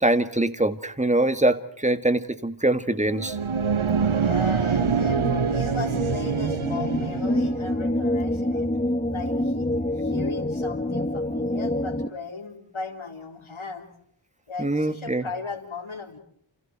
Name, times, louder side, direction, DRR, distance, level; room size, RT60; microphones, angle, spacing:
voice 1, 0.0-3.4 14.6-15.2, right 1 dB, 15° right, 10 dB, 1.9 m, -23 dB
sound 1, 3.0-7.7, right 6 dB, 85° right, 1.1 m, -25 dB
voice 2, 3.9-8.7 9.1-9.7 10.0-13.9 14.5-16.2, left 4 dB, 85° left, 3 dB, 4.3 m, -36 dB
sound 2, 4.8-12.1, left 1 dB, 15° left, 1.3 m, -27 dB
29.5 x 28.5 x 4.6 m, 0.65 s
wide cardioid pair, 75°, 47 cm